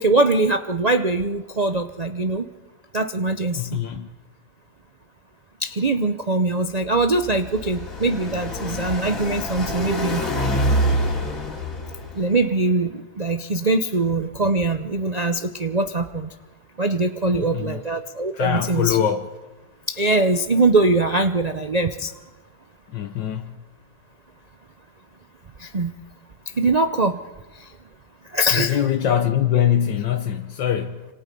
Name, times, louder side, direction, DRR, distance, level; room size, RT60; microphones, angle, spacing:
voice 1, 0.0-2.5 2.9-3.8 5.6-10.3 12.1-16.3 16.8-19.0 19.9-22.1 25.6-25.9 26.5-27.2 27.5-27.7 28.3-28.8, right 2 dB, 80° right, 0.3 m, -22 dB
voice 2, 3.5-4.1 17.3-17.8 18.3-19.3 22.9-23.5 28.5-31.1, left 9 dB, 75° left, 1.6 m, -23 dB
Car passing by, 6.8-12.4, equal, 45° left, 3.2 m, -26 dB
26.5 x 26.0 x 5.4 m
omnidirectional pair, 2.0 m